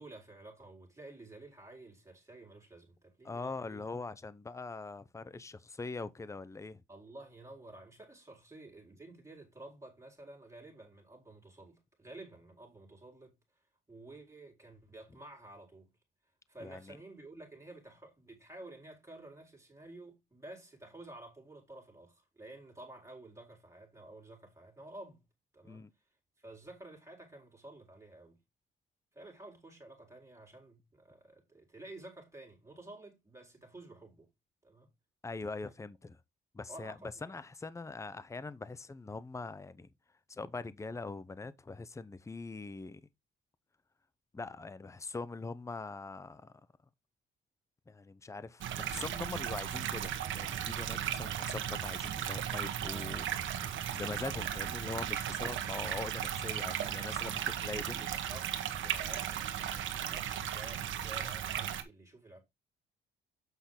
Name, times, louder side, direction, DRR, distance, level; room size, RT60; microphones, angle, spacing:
voice 1, 0.0-3.8 6.9-13.4 13.9-15.9 16.5-25.2 25.5-25.9 26.4-28.4 29.1-34.3 34.6-34.9 36.7-37.4 57.9-62.4, right 2 dB, 15° right, 4.4 m, -52 dB
voice 2, 3.2-6.8 16.6-17.0 25.7-25.9 35.2-36.2 36.5-36.9 37.2-39.9 40.3-43.0 44.3-46.5 47.9-58.1, left 3 dB, 15° left, 0.7 m, -42 dB
sound 1, 48.6-61.8, right 9 dB, 75° right, 1.4 m, -36 dB
8.2 x 5.9 x 3.8 m
cardioid pair, 90°, 20 cm